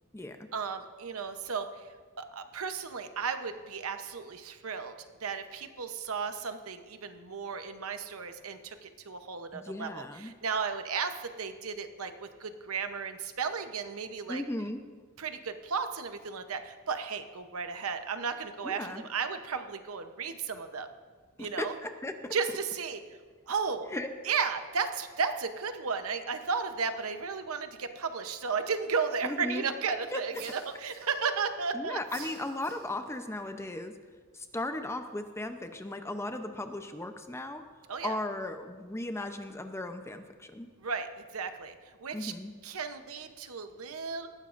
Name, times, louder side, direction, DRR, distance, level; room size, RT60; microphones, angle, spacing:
voice 1, 0.5-4.9 5.2-14.4 15.2-20.9 21.4-21.7 22.3-23.0 23.5-23.9 24.2-32.0 37.9-38.2 40.8-42.3 42.6-44.3, right 5 dB, 70° right, 8 dB, 0.8 m, -34 dB
voice 2, 9.5-10.3 14.3-14.8 18.6-19.0 21.4-22.3 23.9-24.1 29.2-29.7 30.1-30.2 31.7-33.9 34.3-37.6 38.0-40.7 42.1-42.5, left 1 dB, 10° left, 7 dB, 0.6 m, -36 dB
sound 1, 30.3-31.5 32.0-33.2, right 6 dB, 85° right, 2.6 m, -49 dB
18.0 x 14.5 x 2.6 m, 1.5 s
head